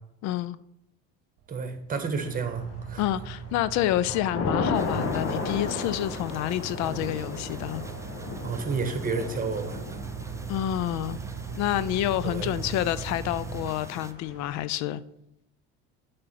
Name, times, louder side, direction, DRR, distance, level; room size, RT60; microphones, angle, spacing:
voice 1, 0.2-0.6 3.0-7.8 10.5-11.2 11.6-15.0, left 13 dB, 65° left, 0.6 m, -28 dB
Car / Idling, 1.4-14.4, right 6 dB, 65° right, 0.9 m, -40 dB
voice 2, 1.5-3.0 8.4-10.0 12.2-12.5, right 5 dB, 30° right, 1.6 m, -31 dB
Thunder / Rain, 2.5-3.0 3.5-14.6, left 4 dB, 45° left, 1.5 m, -35 dB
sound 1, 4.7-14.1, right 2 dB, 10° right, 0.7 m, -46 dB
8.2 x 5.1 x 5.9 m
supercardioid pair, 80°, 30 cm